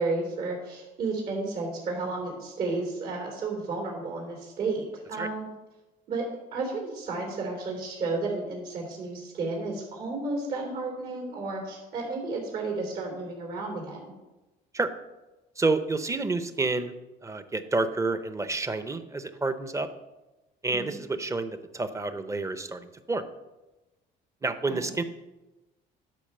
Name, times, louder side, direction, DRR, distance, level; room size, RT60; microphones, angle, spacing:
voice 1, 0.0-5.5 6.1-6.2 6.5-14.1 20.7-21.0 24.7-24.9, right 3 dB, 65° right, -1 dB, 3.3 m, -32 dB
voice 2, 15.6-16.9 17.2-19.9 20.6-23.2 24.4-25.0, right 3 dB, 20° right, 11 dB, 0.8 m, -29 dB
10.5 x 4.7 x 6.8 m, 1.1 s
cardioid pair, 110°, 17 cm